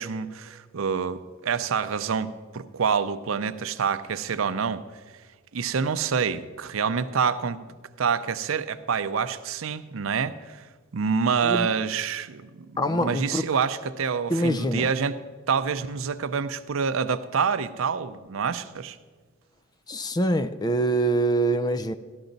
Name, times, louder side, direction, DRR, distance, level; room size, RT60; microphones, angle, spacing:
voice 1, 0.0-4.8 5.5-7.6 8.0-10.6 10.9-15.2 15.5-19.0, right 6 dB, 80° right, 12 dB, 0.6 m, -27 dB
voice 2, 11.4-11.7 12.8-13.4 14.3-14.9 19.9-21.9, right 1 dB, 20° left, 12 dB, 0.4 m, -24 dB
13.0 x 13.0 x 4.0 m, 1.4 s
head